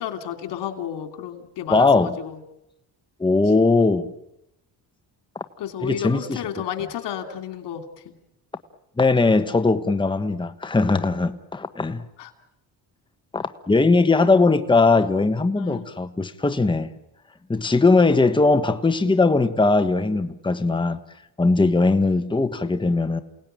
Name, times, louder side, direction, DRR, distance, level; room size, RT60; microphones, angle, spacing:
voice 1, 0.0-2.4 5.6-8.2 11.2-11.4 12.2-12.3 15.6-15.9, left 10 dB, 80° left, 2.8 m, -32 dB
voice 2, 1.7-2.1 3.2-4.1 5.8-6.4 9.0-12.0 13.3-16.9 17.5-21.0 21.4-23.2, left 3 dB, 10° left, 1.2 m, -19 dB
29.0 x 18.5 x 9.1 m
cardioid pair, 90°, 41 cm